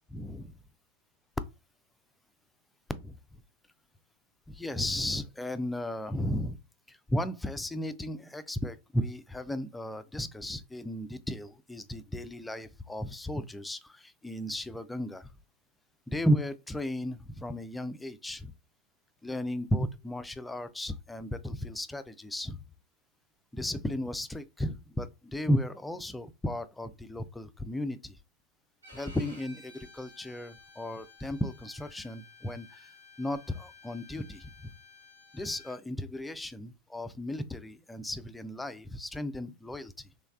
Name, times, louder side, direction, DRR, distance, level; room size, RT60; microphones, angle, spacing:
voice 1, 0.1-0.5 2.9-3.4 4.5-6.6 6.9-15.3 16.1-18.5 19.2-22.6 23.5-28.2 28.9-32.9 33.2-34.7 35.3-40.1, left 1 dB, 5° left, 0.3 m, -34 dB
Bowed string instrument, 28.8-35.8, left 3 dB, 80° right, 1.3 m, -54 dB
3.4 x 3.1 x 2.3 m
figure-of-eight pair, 90°, 0 cm